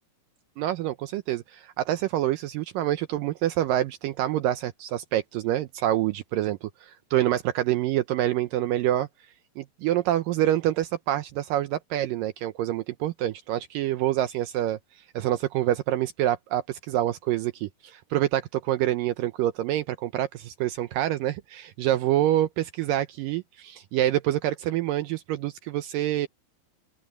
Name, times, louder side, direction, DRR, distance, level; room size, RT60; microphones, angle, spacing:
voice 1, 0.6-9.1 9.6-14.8 15.1-26.3, right 13 dB, 80° right, 2.0 m, -26 dB
open air
omnidirectional pair, 4.7 m